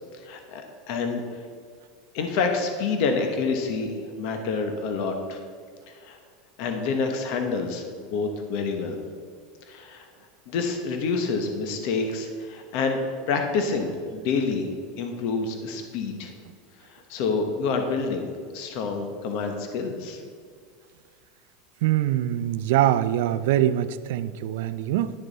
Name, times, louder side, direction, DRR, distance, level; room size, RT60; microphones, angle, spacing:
voice 1, 0.2-1.4 2.1-5.4 5.9-6.2 6.6-7.8 8.1-9.0 9.7-10.1 10.5-14.7 15.0-16.3 16.8-20.2, left 4 dB, 50° left, 5 dB, 1.1 m, -28 dB
voice 2, 21.8-25.1, right 12 dB, 70° right, 13 dB, 0.5 m, -23 dB
11.5 x 6.9 x 4.1 m, 2.1 s
supercardioid pair, 160°, 0 cm